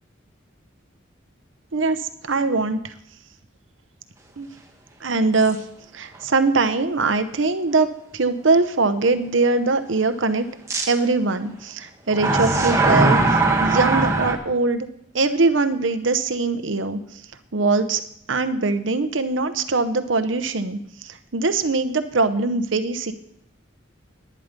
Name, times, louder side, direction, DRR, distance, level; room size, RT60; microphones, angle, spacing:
voice 1, 1.7-2.9 4.4-4.5 5.0-5.6 5.9-7.9 8.1-10.5 10.9-13.2 13.6-14.9 15.1-17.0 17.5-18.0 18.3-23.1, right 3 dB, 80° right, 10 dB, 0.8 m, -22 dB
sound 1, 5.4-5.5 6.1-6.2 10.7-10.8 12.1-14.3, right 3 dB, 15° right, 1.4 m, -19 dB
11.5 x 9.7 x 5.2 m, 0.72 s
head